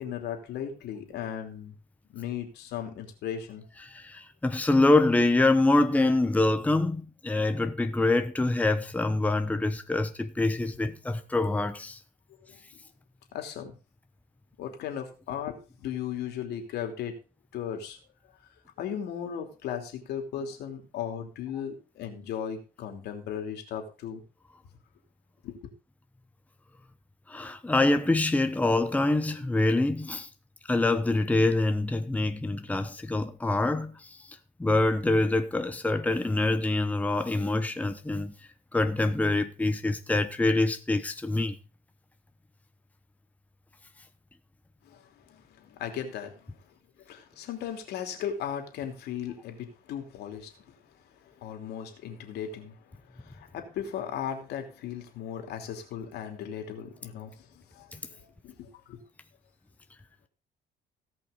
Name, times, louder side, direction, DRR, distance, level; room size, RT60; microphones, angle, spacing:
voice 1, 0.0-1.7 2.1-3.7 12.5-12.6 13.3-13.7 14.6-17.1 17.5-18.0 18.8-24.2 25.4-25.6 44.8-45.0 45.3-46.5 47.1-50.5 51.4-52.7 53.1-57.3 57.7-59.0, left 8 dB, 75° left, 3.1 m, -36 dB
voice 2, 3.8-12.0 27.3-30.3 30.7-34.2 34.6-38.3 38.7-41.6, left 2 dB, 10° left, 1.0 m, -25 dB
17.0 x 5.7 x 5.2 m
cardioid pair, 110°, 17 cm